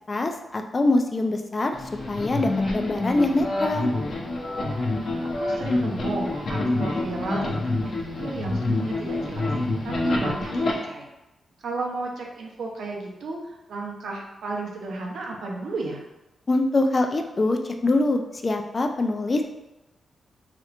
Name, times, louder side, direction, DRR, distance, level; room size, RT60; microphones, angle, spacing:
voice 1, 0.1-1.8 2.1-3.9 16.5-19.4, left 2 dB, 35° left, 5 dB, 0.3 m, -24 dB
sound 1, 1.7-10.7, left 2 dB, 60° left, 0.7 m, -27 dB
voice 2, 5.4-9.5 9.8-11.1 11.6-16.0, right 2 dB, 80° right, 0 dB, 0.6 m, -33 dB
3.3 x 2.9 x 2.4 m, 0.95 s
cardioid pair, 105°, 0 cm